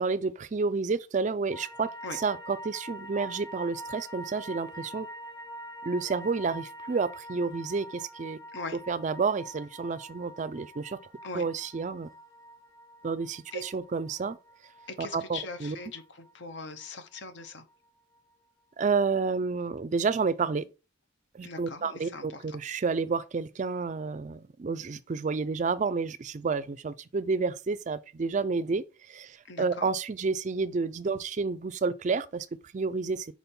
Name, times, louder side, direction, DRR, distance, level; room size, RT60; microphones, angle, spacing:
voice 1, 0.0-5.1 5.8-8.4 8.9-11.0 11.3-12.1 13.0-14.4 15.0-15.8 18.8-20.6 21.3-32.5 32.7-33.3, right 4 dB, 40° right, 0.4 m, -30 dB
sound 1, 1.5-17.9 18.1-18.2, right 1 dB, 15° left, 2.4 m, -45 dB
voice 2, 14.9-17.6 21.4-22.6 29.4-29.9, left 3 dB, 60° left, 0.9 m, -40 dB
5.3 x 4.3 x 4.3 m
head